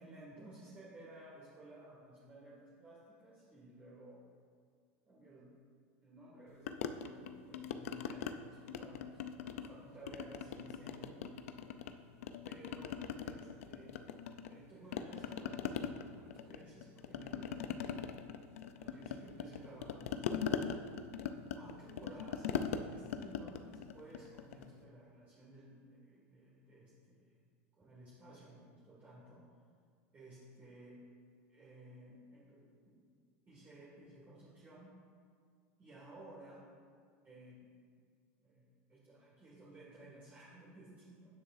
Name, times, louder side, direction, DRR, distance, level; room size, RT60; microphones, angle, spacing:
voice 1, 0.0-4.2 5.1-5.5 6.0-11.2 12.4-14.0 14.5-18.1 18.8-20.6 21.5-27.3 27.7-29.5 30.1-31.0 31.5-33.0 33.5-35.0 35.8-36.7 37.2-37.7 38.4-41.3, right 1 dB, 25° right, -7 dB, 2.0 m, -56 dB
sound 1, 6.7-8.3 8.7-9.8 10.1-11.9 12.2-14.6 14.9-24.7, left 8 dB, 85° left, 0.6 m, -41 dB
17.0 x 6.4 x 2.7 m, 2.1 s
supercardioid pair, 130°, 7 cm